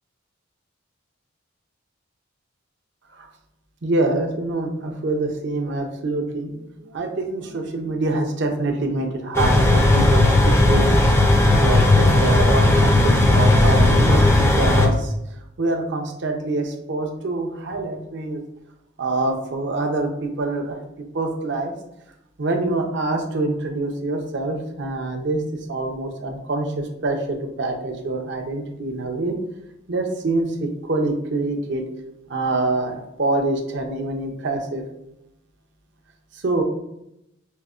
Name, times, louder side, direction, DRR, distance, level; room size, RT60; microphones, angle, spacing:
voice 1, 3.8-14.2 14.6-15.1 15.6-18.4 19.0-20.8 21.1-21.7 22.4-25.4 25.7-29.3 29.9-31.8 32.3-34.8 36.4-36.6, right 2 dB, 60° right, 3 dB, 0.5 m, -25 dB
sound 1, 9.3-14.9, left 2 dB, 15° left, 0.3 m, -16 dB
5.2 x 2.1 x 2.4 m, 0.84 s
head